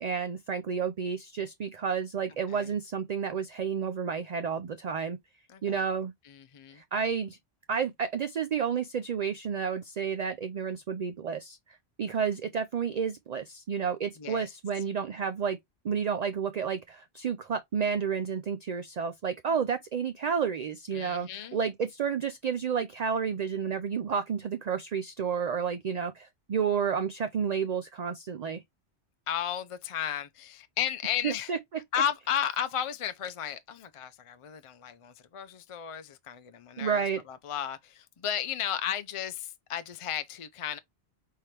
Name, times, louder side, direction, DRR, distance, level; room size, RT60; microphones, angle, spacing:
voice 1, 0.0-5.2 5.6-6.1 6.8-7.4 7.7-11.6 12.0-15.6 15.8-28.6 31.2-31.6 36.8-37.2, right 6 dB, 50° right, 0.5 m, -31 dB
voice 2, 5.5-5.8 6.2-6.8 14.2-14.5 20.9-21.6 29.3-31.5 31.9-40.8, left 9 dB, 50° left, 0.4 m, -34 dB
4.4 x 3.7 x 3.2 m
omnidirectional pair, 1.1 m